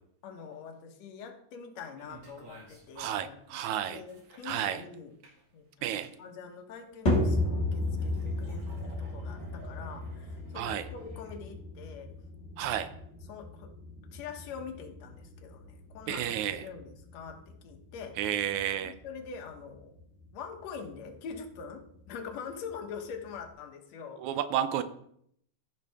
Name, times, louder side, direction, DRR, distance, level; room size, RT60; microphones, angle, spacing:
voice 1, 0.2-3.6 3.9-5.1 5.5-12.1 13.3-13.7 14.1-18.2 18.8-19.9 20.3-24.2, left 6 dB, 70° left, 4 dB, 2.3 m, -44 dB
sound 1, 2.0-11.4, right 1 dB, 55° right, 2.9 m, -56 dB
voice 2, 3.0-4.0 4.4-4.8 5.8-6.1 10.6-10.9 12.6-12.9 16.1-16.7 18.2-18.9 24.2-24.8, right 10 dB, 80° right, 11 dB, 2.0 m, -31 dB
sound 2, 7.1-23.5, left 1 dB, 25° left, 1.8 m, -36 dB
14.5 x 5.5 x 3.5 m, 0.69 s
omnidirectional pair, 3.4 m